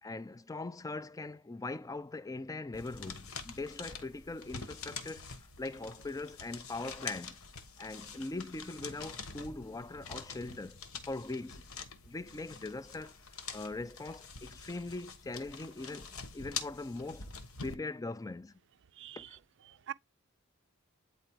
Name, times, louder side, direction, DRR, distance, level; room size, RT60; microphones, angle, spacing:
voice 1, 0.0-7.4 7.8-11.6 12.0-13.2 13.5-17.3 17.6-18.5 19.2-19.4, left 2 dB, 15° left, 0.4 m, -41 dB
sound 1, 2.7-17.8, left 5 dB, 70° left, 1.2 m, -46 dB
voice 2, 19.0-19.3 19.7-19.9, right 10 dB, 55° right, 0.5 m, -43 dB
9.0 x 4.1 x 4.6 m
head